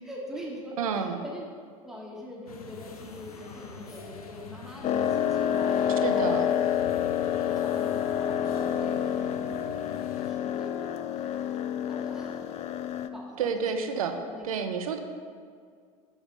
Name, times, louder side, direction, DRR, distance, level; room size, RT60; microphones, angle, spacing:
voice 1, 0.0-1.4 1.8-6.7 7.0-11.6 11.9-12.4 13.1-14.7, left 1 dB, ahead, -3 dB, 1.5 m, -43 dB
voice 2, 0.8-1.2 6.0-6.4 13.4-14.1 14.4-15.0, right 6 dB, 75° right, 7 dB, 0.7 m, -29 dB
sound 1, 2.5-10.3, left 4 dB, 80° left, 0.8 m, -44 dB
sound 2, 4.8-13.1, left 9 dB, 35° left, 0.4 m, -28 dB
7.2 x 4.8 x 5.3 m, 2.1 s
figure-of-eight pair, 80°, 18 cm